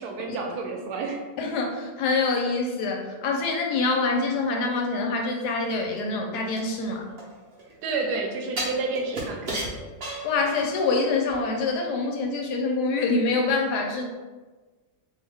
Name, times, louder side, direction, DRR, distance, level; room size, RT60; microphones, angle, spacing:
voice 1, 0.0-1.2 7.8-9.7, right 3 dB, 85° right, 2 dB, 1.1 m, -30 dB
voice 2, 1.4-7.0 10.2-14.0, left 3 dB, 90° left, 1 dB, 1.2 m, -25 dB
sound 1, 6.6-7.7 8.6-10.9 11.3-11.4, right 1 dB, 45° right, 0.9 m, -34 dB
2.8 x 2.5 x 3.3 m, 1.3 s
omnidirectional pair, 1.7 m